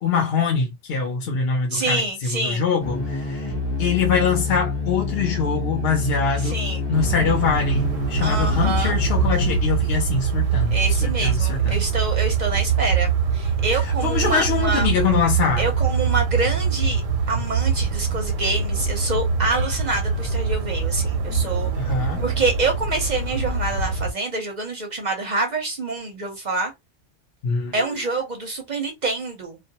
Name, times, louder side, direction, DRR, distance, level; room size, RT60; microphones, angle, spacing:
voice 1, 0.0-2.0 2.3-3.5 3.8-6.6 6.9-11.8 13.8-15.7 21.8-22.3 27.4-27.7, left 6 dB, 60° left, 0.8 m, -23 dB
voice 2, 1.7-2.6 6.4-6.9 8.2-9.0 10.7-14.9 15.6-17.0 17.3-21.7 22.2-26.7 27.7-29.6, right 3 dB, 50° right, 0.6 m, -26 dB
sound 1, 2.8-9.6, left 3 dB, 25° left, 0.7 m, -27 dB
sound 2, 6.9-24.1, right 5 dB, 85° right, 0.9 m, -23 dB
2.3 x 2.1 x 2.7 m
omnidirectional pair, 1.3 m